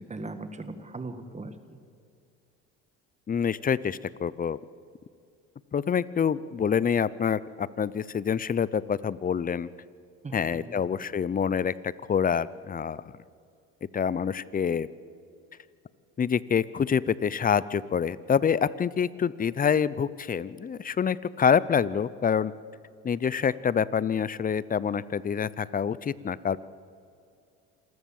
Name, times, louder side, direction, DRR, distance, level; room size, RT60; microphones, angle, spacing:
voice 1, 0.0-1.5 10.2-10.7, right 2 dB, 20° right, 9 dB, 1.6 m, -39 dB
voice 2, 3.3-4.6 5.7-9.7 10.3-13.0 13.9-14.9 16.2-22.5 23.0-26.6, left 7 dB, 25° left, 19 dB, 0.7 m, -26 dB
sound 1, 15.2-15.6 18.6-19.6, left 2 dB, 70° left, 6.5 m, -58 dB
27.0 x 14.0 x 7.2 m, 2.4 s
supercardioid pair, 85°, 31 cm